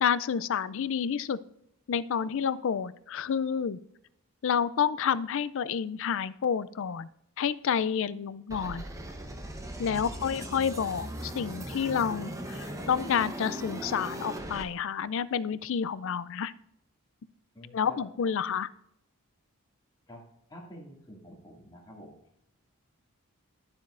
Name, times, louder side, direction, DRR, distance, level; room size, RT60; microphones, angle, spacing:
voice 1, 0.0-1.4 1.9-3.8 4.4-7.1 7.4-8.8 9.8-16.5 17.7-18.7, left 7 dB, 60° left, 17 dB, 0.4 m, -29 dB
sound 1, 8.5-14.6, right 1 dB, 15° right, 0.8 m, -39 dB
voice 2, 9.9-10.3 17.5-18.1 20.1-20.2 20.5-22.1, left 1 dB, 20° left, -3 dB, 2.2 m, -48 dB
11.5 x 7.3 x 2.5 m, 0.75 s
head